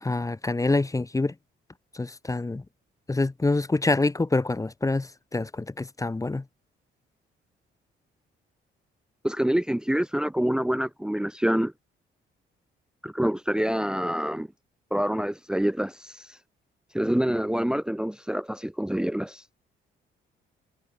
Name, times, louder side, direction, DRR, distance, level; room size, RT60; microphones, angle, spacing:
voice 1, 0.0-1.3 1.9-2.6 3.1-6.4, left 2 dB, 15° left, 1.2 m, -26 dB
voice 2, 9.2-11.7 13.0-14.5 14.9-16.2 16.9-19.4, equal, 5° right, 1.0 m, -26 dB
cardioid pair, 90°, 20 cm